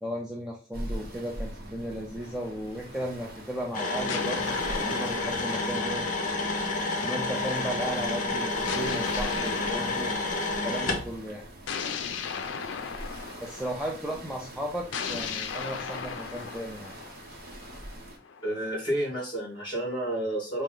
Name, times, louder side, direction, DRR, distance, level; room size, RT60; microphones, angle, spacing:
voice 1, 0.0-6.1 7.0-10.1 10.6-11.4 13.4-16.9, equal, 5° right, -3 dB, 0.4 m, -35 dB
sound 1, 0.7-18.2, right 1 dB, 50° right, 0.8 m, -43 dB
sound 2, 2.2-3.3 4.1-6.7 8.7-10.8 11.7-14.0 14.9-18.7, left 6 dB, 70° left, 0.4 m, -37 dB
sound 3, 3.7-11.1, left 2 dB, 40° left, 0.8 m, -29 dB
voice 2, 18.4-20.6, right 1 dB, 25° left, -3 dB, 1.9 m, -30 dB
4.3 x 2.1 x 3.8 m, 0.36 s
head